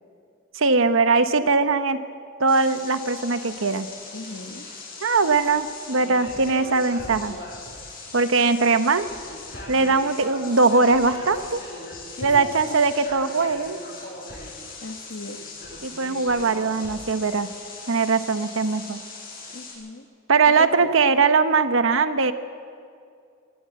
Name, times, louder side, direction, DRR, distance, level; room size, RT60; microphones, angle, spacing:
voice 1, 0.5-2.0 2.4-3.9 5.0-7.4 8.1-9.1 9.7-11.6 12.2-13.8 15.8-17.5 17.9-19.0 20.3-22.3, right 4 dB, 70° right, 10 dB, 1.0 m, -20 dB
sound 1, 2.5-19.7, left 3 dB, 45° left, 7.7 m, -39 dB
voice 2, 4.1-4.7 12.2-12.8 14.8-15.4 19.5-20.0 20.8-20.9, left 2 dB, 60° left, 7 dB, 1.3 m, -37 dB
21.0 x 18.0 x 7.7 m, 2.3 s
head